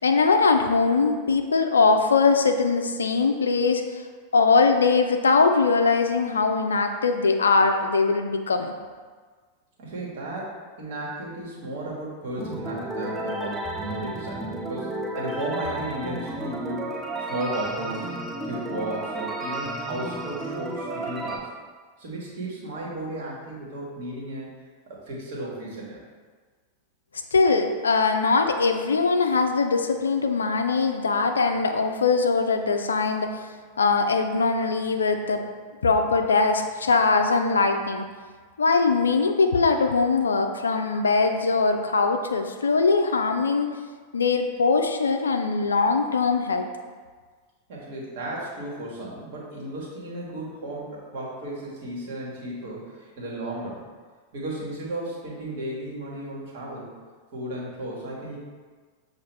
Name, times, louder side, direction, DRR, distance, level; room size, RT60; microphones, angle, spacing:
voice 1, 0.0-4.0 4.3-8.7 27.3-33.5 33.8-35.4 35.8-38.0 38.6-43.8 44.1-46.7, left 4 dB, 70° left, 6 dB, 0.3 m, -21 dB
voice 2, 9.8-18.1 18.4-21.5 22.0-24.5 24.9-26.0 47.7-53.8 54.3-56.9 57.3-58.4, right 1 dB, 55° right, -4 dB, 1.4 m, -34 dB
sound 1, 12.4-21.4, right 1 dB, 5° right, 0.5 m, -32 dB
6.7 x 2.4 x 3.2 m, 1.5 s
figure-of-eight pair, 90°, 0 cm